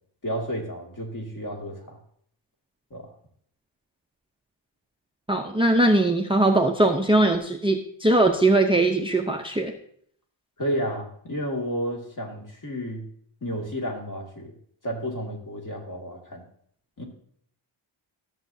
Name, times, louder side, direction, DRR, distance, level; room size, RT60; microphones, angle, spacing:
voice 1, 0.2-2.0 2.9-3.1 10.6-13.1 13.4-14.5 14.8-16.4 17.0-17.1, equal, 40° left, 0 dB, 2.3 m, -31 dB
voice 2, 5.3-9.7, right 2 dB, 10° right, 5 dB, 0.6 m, -20 dB
13.5 x 7.1 x 2.7 m, 0.64 s
wide cardioid pair, 105°, 48 cm